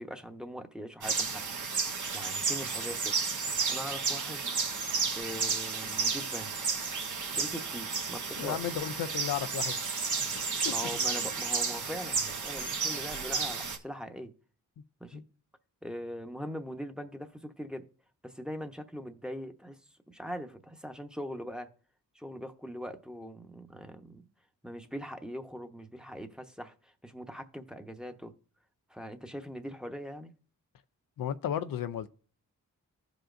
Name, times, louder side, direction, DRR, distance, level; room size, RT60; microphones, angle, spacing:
voice 1, 0.0-1.4 2.1-3.2 3.7-4.6 5.1-6.5 7.4-8.7 10.7-14.3 15.0-15.2 15.8-17.9 18.2-19.8 20.1-21.7 22.1-24.2 24.6-28.3 28.9-30.3, equal, ahead, 0.9 m, -41 dB
sound 1, 1.0-13.8, right 5 dB, 65° right, 1.1 m, -32 dB
voice 2, 8.4-9.8 10.3-10.5 15.1-15.2 31.2-32.1, left 9 dB, 85° left, 0.5 m, -34 dB
15.0 x 5.1 x 2.5 m
cardioid pair, 65°, 33 cm